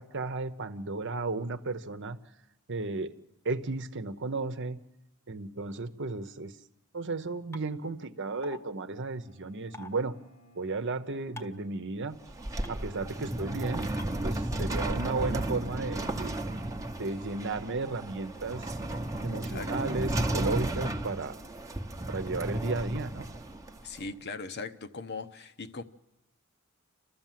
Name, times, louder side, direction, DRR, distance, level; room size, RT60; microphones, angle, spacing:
voice 1, 0.0-2.2 2.7-3.1 3.4-4.8 5.3-6.5 6.9-10.1 10.5-12.2 12.7-13.9 14.2-16.4 17.0-18.7 19.2-21.3 22.1-23.3, right 3 dB, 60° right, 1.0 m, -34 dB
sound 1, 7.5-7.6 8.4-8.6 9.7-9.9 11.4-11.6 12.6-12.7 14.0-14.1, left 2 dB, 10° left, 0.9 m, -43 dB
Bowed string instrument, 9.1-12.9, right 1 dB, 90° left, 2.6 m, -61 dB
sound 2, 12.1-24.0, right 1 dB, 15° right, 0.9 m, -34 dB
voice 2, 14.5-14.9 19.4-19.7 23.8-25.8, left 4 dB, 50° left, 0.9 m, -40 dB
30.0 x 13.0 x 7.6 m
head